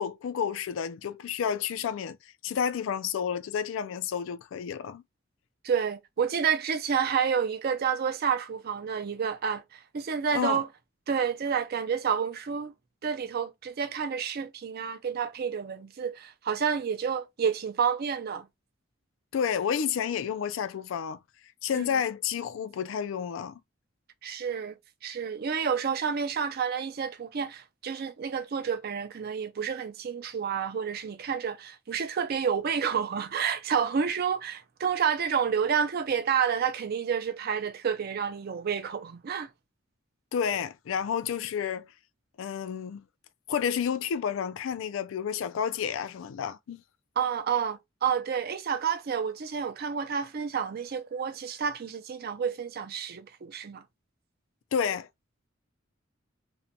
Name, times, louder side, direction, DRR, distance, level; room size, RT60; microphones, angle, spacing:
voice 1, 0.0-2.2 2.4-5.0 10.3-10.6 19.3-21.2 21.6-23.6 40.3-41.9 42.4-43.0 43.5-46.8 54.7-55.1, left 7 dB, 80° left, 0.3 m, -30 dB
voice 2, 5.6-10.7 11.1-12.7 13.0-18.5 21.7-22.0 24.2-24.8 25.0-39.5 47.2-53.8, right 7 dB, 50° right, 0.4 m, -29 dB
2.5 x 2.2 x 2.7 m
head